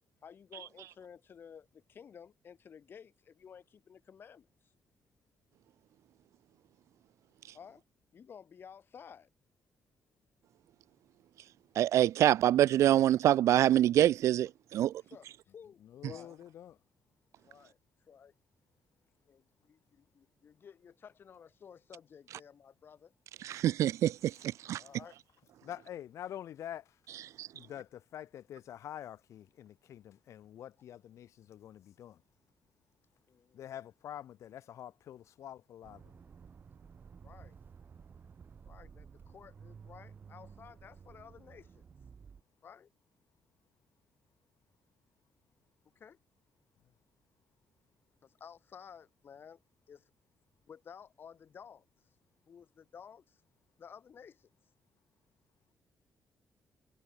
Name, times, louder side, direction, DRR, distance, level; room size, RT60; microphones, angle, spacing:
voice 1, 0.2-4.5 7.5-7.8 8.1-9.3 15.0-16.4 17.4-17.8 18.1-18.3 19.2-23.1 24.8-25.2 33.3-33.8 37.2-37.6 38.6-41.8 42.6-42.9 46.0-46.2 48.2-49.6 49.9-50.1 50.7-51.9 52.5-53.4 53.8-54.5, left 7 dB, 45° left, 4.3 m, -54 dB
voice 2, 11.8-14.9 23.4-24.3 24.7-24.8 27.4-27.5, right 12 dB, 75° right, 0.4 m, -25 dB
voice 3, 15.8-16.8 24.4-24.5 25.6-27.0 27.5-32.2 33.5-36.2, left 11 dB, 75° left, 2.9 m, -46 dB
Accelerating revving vroom, 35.8-42.4, right 6 dB, 40° right, 3.3 m, -54 dB
cardioid pair, 140°, 5 cm